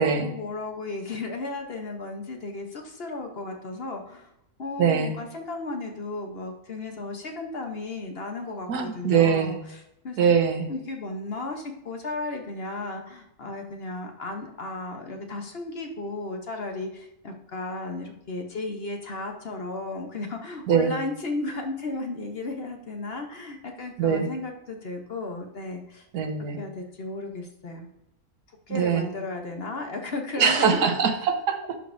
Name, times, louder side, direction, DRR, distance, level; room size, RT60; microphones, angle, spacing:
voice 1, 0.0-4.3 4.6-10.2 10.7-26.1 26.6-27.9 28.7-30.9, left 2 dB, 45° left, 3 dB, 1.0 m, -34 dB
voice 2, 4.8-5.1 8.7-9.6 10.2-10.7 20.7-20.9 24.0-24.3 26.1-26.6 28.7-29.0 30.4-31.8, right 7 dB, 90° right, 6 dB, 1.5 m, -22 dB
12.0 x 5.2 x 2.6 m, 0.82 s
omnidirectional pair, 1.7 m